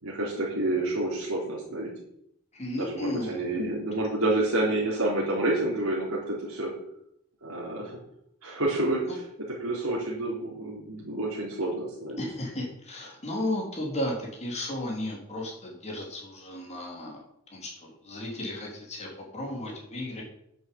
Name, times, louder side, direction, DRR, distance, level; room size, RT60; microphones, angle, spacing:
voice 1, 0.0-1.9 2.8-6.7 7.4-8.0 8.4-9.2 9.5-12.2, right 2 dB, 75° right, -4 dB, 3.8 m, -29 dB
voice 2, 2.5-3.4 9.1-9.2 12.2-17.2 17.5-20.2, left 1 dB, 30° left, -2 dB, 3.9 m, -34 dB
10.0 x 7.8 x 8.6 m, 0.75 s
head